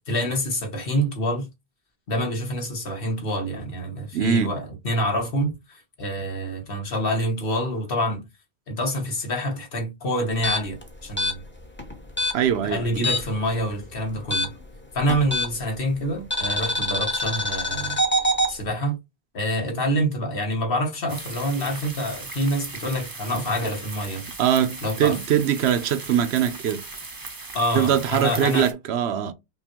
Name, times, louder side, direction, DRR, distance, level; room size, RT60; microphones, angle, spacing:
voice 1, 0.1-1.5 2.1-8.3 8.7-11.4 12.6-14.5 14.9-18.0 18.5-19.0 19.3-24.3 24.8-25.2 27.5-28.7, equal, 60° left, 1.3 m, -26 dB
voice 2, 4.1-4.5 12.3-12.9 24.4-26.8 27.7-29.3, right 9 dB, 75° right, 0.9 m, -22 dB
sound 1, 10.3-13.5 13.7-15.8 16.3-18.5, equal, 10° left, 0.7 m, -25 dB
sound 2, 21.1-28.7, right 3 dB, 25° right, 0.5 m, -38 dB
5.4 x 2.3 x 2.9 m
omnidirectional pair, 1.1 m